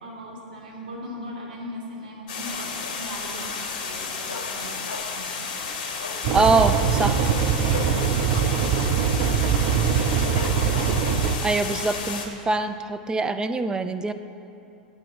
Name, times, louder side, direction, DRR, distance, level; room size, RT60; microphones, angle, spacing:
voice 1, 0.0-5.6 6.7-9.7, equal, 75° right, -2 dB, 2.6 m, -39 dB
sound 1, 2.3-12.3, left 5 dB, 60° left, 1.6 m, -32 dB
Dog, 2.8-3.2 3.5-3.6 3.9-5.3 5.6-5.7 6.0-6.2 6.6-8.0 8.4-8.5 8.8-9.2 9.7-9.8 10.3-11.1 11.6-11.7, left 4 dB, 75° left, 1.2 m, -37 dB
sound 2, 6.2-11.4, right 7 dB, 50° right, 0.7 m, -22 dB
voice 2, 6.3-7.1 11.4-14.1, right 3 dB, 15° right, 9 dB, 0.5 m, -23 dB
8.3 x 6.9 x 7.4 m, 2.8 s
hypercardioid pair, 100°, 5 cm